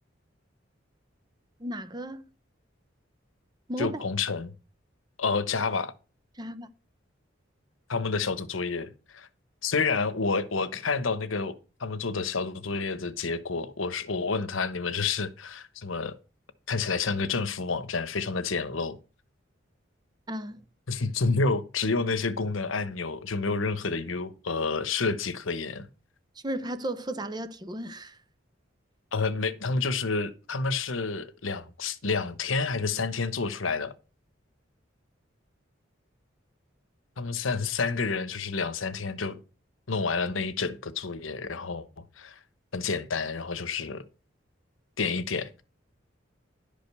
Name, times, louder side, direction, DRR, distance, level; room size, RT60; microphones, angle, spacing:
voice 1, 1.6-2.3 3.7-4.0 6.4-6.7 20.3-20.6 26.4-28.2, right 1 dB, 20° right, 0.8 m, -34 dB
voice 2, 3.8-4.5 5.2-5.9 7.9-9.3 9.6-16.2 16.7-19.0 20.9-25.9 29.1-33.9 37.2-39.4 39.9-41.9 42.2-42.4 42.7-44.0 45.0-45.6, left 4 dB, 90° left, 1.0 m, -29 dB
11.5 x 5.2 x 6.7 m
head